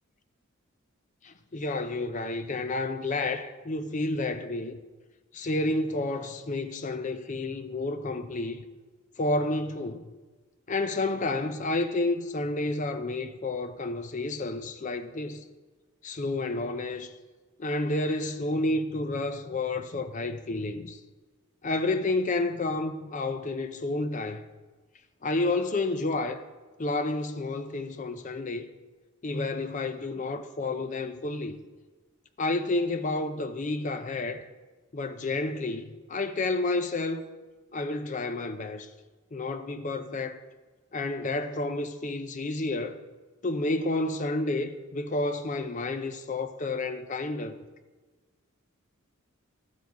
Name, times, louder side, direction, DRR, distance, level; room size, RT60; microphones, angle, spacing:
voice 1, 1.2-4.8 5.3-8.6 9.2-10.1 10.7-15.4 16.0-17.1 17.6-21.0 21.6-24.4 25.2-26.4 26.8-28.7 29.2-31.6 32.4-34.4 34.9-37.3 37.7-38.9 39.3-40.4 40.9-43.0 43.4-47.6, left 2 dB, 35° left, 0.5 m, -30 dB
13.0 x 7.2 x 4.7 m
head